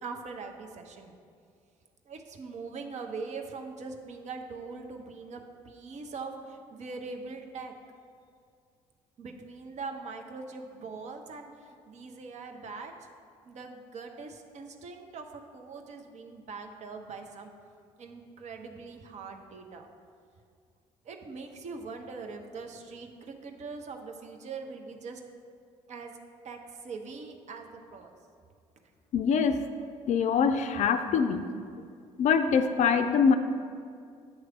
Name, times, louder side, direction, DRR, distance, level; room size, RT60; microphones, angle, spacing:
voice 1, 0.0-1.1 2.1-7.7 9.2-12.9 13.4-17.5 18.0-19.9 21.0-25.2 25.9-26.1 26.4-28.1, right 4 dB, 45° right, 4 dB, 0.8 m, -42 dB
voice 2, 29.1-29.7 30.1-31.5 32.2-33.4, left 6 dB, 45° left, 8 dB, 0.4 m, -24 dB
8.5 x 3.2 x 5.9 m, 2.3 s
figure-of-eight pair, 50°, 17 cm